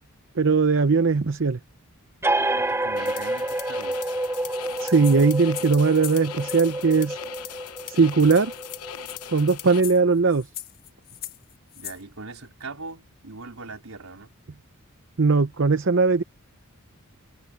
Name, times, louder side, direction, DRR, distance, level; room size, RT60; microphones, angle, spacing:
voice 1, 0.4-1.6 4.8-7.2 7.9-8.5 9.3-10.5 15.2-16.2, right 4 dB, 55° right, 0.7 m, -19 dB
sound 1, 2.2-9.4, right 1 dB, 10° right, 0.6 m, -29 dB
voice 2, 2.5-4.2 11.8-14.3, right 3 dB, 75° right, 4.1 m, -41 dB
sound 2, 2.9-9.8, left 10 dB, 85° left, 1.0 m, -39 dB
sound 3, 4.5-6.7 7.6-7.7 8.0-8.1 8.3-12.0, left 12 dB, 45° left, 1.5 m, -41 dB
head